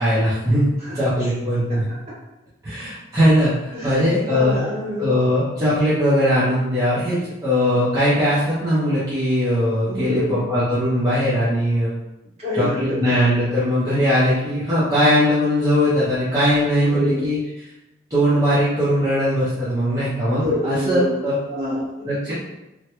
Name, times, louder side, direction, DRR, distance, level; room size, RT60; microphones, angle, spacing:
voice 1, 0.0-0.7 0.9-1.9 2.6-4.6 5.0-11.9 12.5-17.4 18.1-21.3 22.1-22.3, equal, 20° right, -12 dB, 0.7 m, -20 dB
voice 2, 3.7-5.1 9.8-10.4 12.4-13.1 16.8-17.2 20.4-22.3, left 1 dB, 35° right, -8 dB, 1.2 m, -27 dB
3.2 x 2.2 x 2.9 m, 0.96 s
head